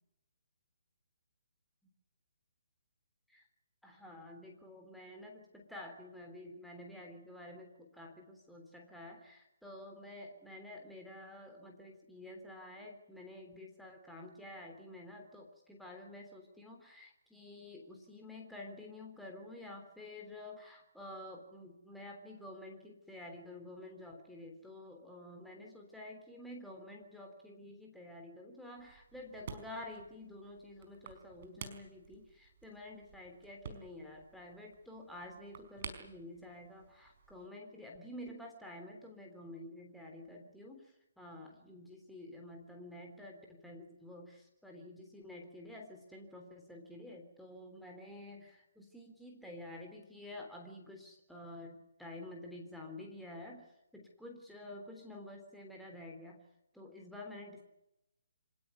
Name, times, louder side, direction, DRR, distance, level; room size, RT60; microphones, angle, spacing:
voice 1, 3.8-56.4 56.7-57.6, left 1 dB, ahead, -1 dB, 3.3 m, -50 dB
sound 1, 28.8-37.5, right 6 dB, 45° right, 4.8 m, -52 dB
26.0 x 18.5 x 9.7 m, 0.88 s
figure-of-eight pair, 145°, 0 cm